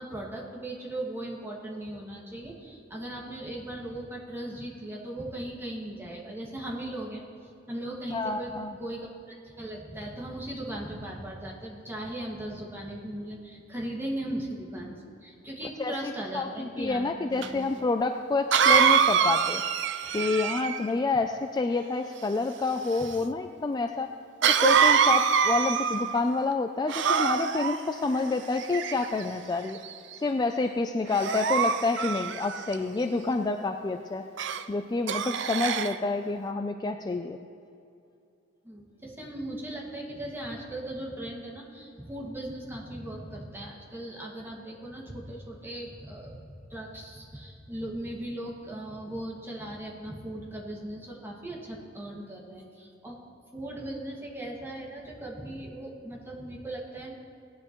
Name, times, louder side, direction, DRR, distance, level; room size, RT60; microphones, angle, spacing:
voice 1, 0.0-8.5 8.8-17.7 38.6-46.4 46.7-53.2 53.5-57.1, right 1 dB, 10° right, -3 dB, 1.8 m, -38 dB
voice 2, 8.1-8.7 15.8-19.6 20.1-24.1 24.6-29.8 30.2-34.2 34.7-37.4, left 3 dB, 20° left, 6 dB, 0.3 m, -28 dB
Cough, 17.4-17.5 18.5-20.9 24.4-26.2 26.9-27.8 28.6-29.2 29.8-30.1 31.1-32.7 34.4-34.6 35.1-36.0, right 7 dB, 65° right, 0.5 m, -24 dB
18.0 x 10.0 x 3.0 m, 2.5 s
head